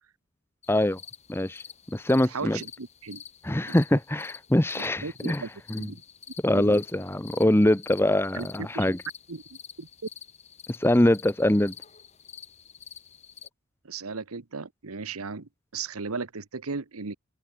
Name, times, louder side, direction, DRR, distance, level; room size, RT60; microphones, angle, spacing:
sound 1, 0.6-13.5, left 8 dB, 30° left, 4.5 m, -48 dB
voice 1, 0.7-1.0 1.3-1.6 1.9-2.6 3.4-5.4 5.7-5.9 6.4-9.0 10.8-11.7, left 1 dB, 10° left, 0.9 m, -23 dB
voice 2, 2.3-3.2 3.7-3.8 5.0-5.5 5.7-6.0 6.5-6.8 8.3-8.5 8.7-8.8 9.3-9.4 9.8-9.9 13.8-17.2, right 4 dB, 85° right, 1.1 m, -36 dB
open air
head